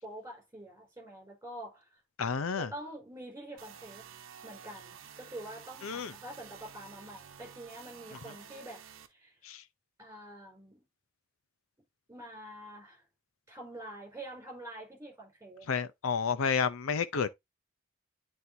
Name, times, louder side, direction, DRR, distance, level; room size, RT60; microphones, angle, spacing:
voice 1, 0.0-1.9 2.6-4.0 4.4-8.8 9.1-9.3 10.0-10.8 12.1-13.0 13.5-15.7, right 1 dB, 15° right, 4.6 m, -46 dB
voice 2, 2.2-2.7 5.8-6.1 9.4-9.6 15.7-17.3, left 6 dB, 90° left, 0.6 m, -30 dB
sound 1, 3.6-9.1, right 7 dB, 70° right, 0.9 m, -51 dB
9.6 x 4.3 x 2.7 m
head